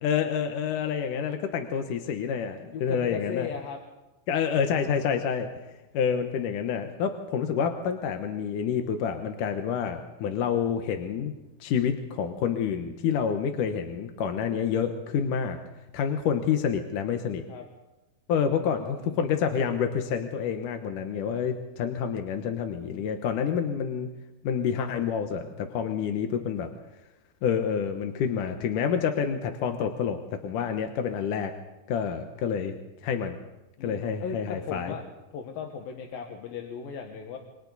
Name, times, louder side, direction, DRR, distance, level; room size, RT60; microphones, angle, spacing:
voice 1, 0.0-3.5 4.3-5.5 5.9-11.3 11.6-15.6 15.9-17.4 18.3-24.1 24.4-26.7 27.4-31.5 31.9-32.7 33.0-33.4 33.8-35.0, left 7 dB, 70° left, 5 dB, 2.6 m, -28 dB
voice 2, 2.7-3.8 17.5-17.7 18.5-19.4 33.8-35.0 35.3-37.4, left 6 dB, 90° left, 2 dB, 3.4 m, -37 dB
27.5 x 25.5 x 4.1 m, 1.0 s
omnidirectional pair, 4.0 m